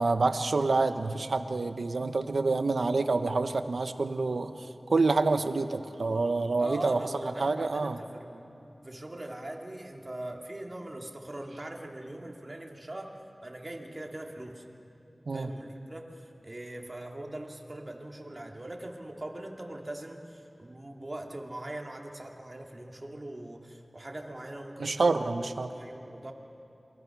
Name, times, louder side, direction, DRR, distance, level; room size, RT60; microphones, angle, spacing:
voice 1, 0.0-4.6 4.9-8.0 15.3-15.5 24.8-25.7, right 3 dB, 90° right, 9 dB, 1.0 m, -27 dB
voice 2, 6.6-8.5 8.8-14.6 15.3-26.3, right 1 dB, 40° right, 1 dB, 2.7 m, -41 dB
28.0 x 23.0 x 6.2 m, 2.8 s
wide cardioid pair, 45°, 0 cm